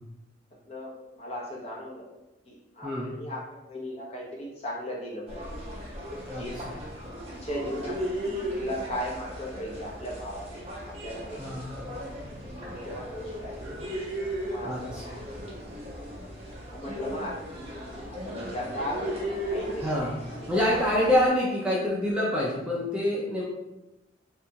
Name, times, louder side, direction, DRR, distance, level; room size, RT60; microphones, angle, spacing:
voice 1, 0.7-2.1 2.4-5.6 6.2-6.6 7.4-8.0 8.5-11.4 11.8-12.0 12.6-13.6 14.4-15.3 16.7-17.4 18.1-20.2, equal, 35° left, -4 dB, 0.7 m, -37 dB
voice 2, 2.8-3.1 6.3-6.4 11.4-11.9 14.6-15.0 19.8-20.2 20.5-23.4, left 1 dB, 5° right, -6 dB, 0.4 m, -26 dB
sound 1, 5.3-21.3, equal, 35° right, 0.7 m, -36 dB
2.8 x 2.3 x 2.7 m, 0.98 s
head